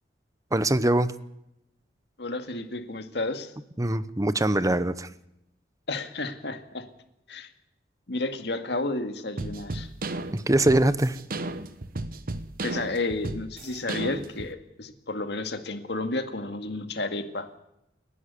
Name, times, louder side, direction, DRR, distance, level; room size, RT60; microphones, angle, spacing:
voice 1, 0.5-1.1 3.8-5.1 10.3-11.2, right 1 dB, 20° right, 14 dB, 0.9 m, -23 dB
voice 2, 2.2-3.5 5.9-6.9 7.3-7.5 8.1-9.9 12.6-17.5, left 2 dB, 70° left, 7 dB, 2.0 m, -32 dB
sound 1, 9.4-14.5, right 2 dB, 55° right, 1.2 m, -34 dB
29.5 x 11.0 x 8.3 m, 0.83 s
head